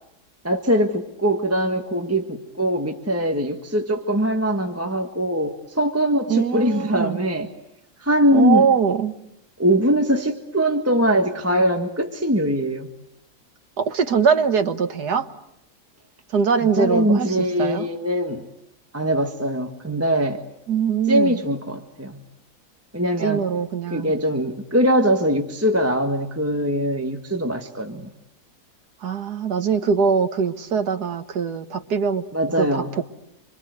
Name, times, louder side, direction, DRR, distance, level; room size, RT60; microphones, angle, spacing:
voice 1, 0.4-7.5 8.0-8.7 9.6-12.9 16.8-18.4 18.9-20.4 21.1-22.2 22.9-23.5 23.9-28.1 32.3-32.9, equal, 10° right, 4 dB, 1.5 m, -22 dB
voice 2, 6.3-7.2 8.3-9.1 13.8-15.3 16.3-17.9 20.7-21.4 23.2-24.1 29.0-32.2 32.6-33.0, right 6 dB, 90° right, 7 dB, 2.0 m, -22 dB
27.0 x 25.0 x 8.0 m, 0.83 s
omnidirectional pair, 1.7 m